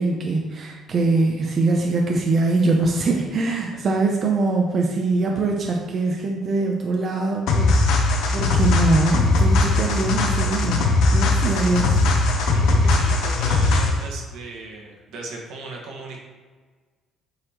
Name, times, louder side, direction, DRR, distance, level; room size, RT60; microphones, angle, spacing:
voice 1, 0.0-12.0, right 3 dB, 35° right, 1 dB, 0.6 m, -23 dB
sound 1, 7.5-14.1, left 2 dB, 75° left, 0.8 m, -19 dB
voice 2, 12.5-16.2, right 3 dB, 80° right, -1 dB, 1.4 m, -37 dB
7.7 x 4.0 x 3.0 m, 1.4 s
cardioid pair, 155°, 0 cm